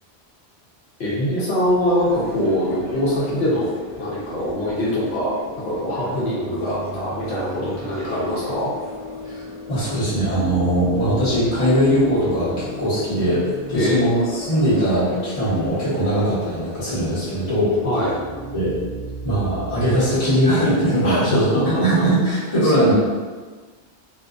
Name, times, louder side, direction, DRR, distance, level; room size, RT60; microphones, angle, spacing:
voice 1, 1.0-3.7 4.0-8.7 13.7-14.1 17.8-18.1 21.0-21.8 22.6-22.9, equal, 80° left, -8 dB, 1.0 m, -23 dB
sound 1, 1.6-17.9, left 1 dB, 15° right, 0.9 m, -41 dB
sound 2, 5.9-21.9, right 2 dB, 60° right, 0.7 m, -37 dB
voice 2, 9.7-13.4 13.7-17.7 18.5-18.7 19.2-22.9, right 1 dB, 35° left, -12 dB, 1.2 m, -20 dB
2.5 x 2.4 x 2.4 m, 1.4 s
omnidirectional pair, 1.1 m